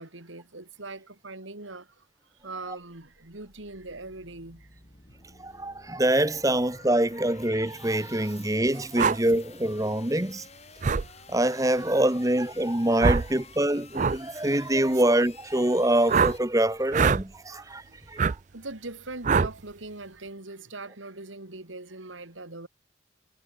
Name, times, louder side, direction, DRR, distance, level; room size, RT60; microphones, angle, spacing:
voice 1, 0.0-1.8 2.4-4.6 8.7-8.8 14.9-15.0 18.5-22.7, right 2 dB, 80° right, 3.0 m, -41 dB
sound 1, 2.4-16.4, left 5 dB, 35° left, 5.2 m, -52 dB
voice 2, 5.4-10.4 11.3-17.8 18.1-18.2, right 1 dB, 15° right, 1.3 m, -25 dB
sound 2, 9.0-9.2 10.8-11.0 13.0-13.3 13.9-14.2 16.1-16.4 16.9-17.2 18.2-18.3 19.2-19.5, right 5 dB, 40° right, 0.4 m, -22 dB
head